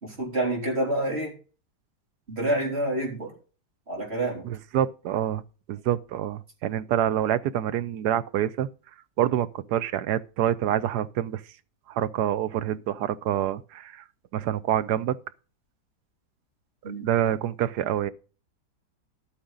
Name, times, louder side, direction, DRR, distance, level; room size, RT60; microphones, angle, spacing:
voice 1, 0.0-1.3 2.3-3.3 3.9-4.5 16.8-17.1, right 1 dB, 40° right, 3.7 m, -28 dB
voice 2, 4.4-5.4 5.7-8.7 9.2-11.4 11.9-14.0 14.3-15.2 17.0-18.1, right 11 dB, 75° right, 1.2 m, -26 dB
11.5 x 8.8 x 3.8 m
omnidirectional pair, 1.8 m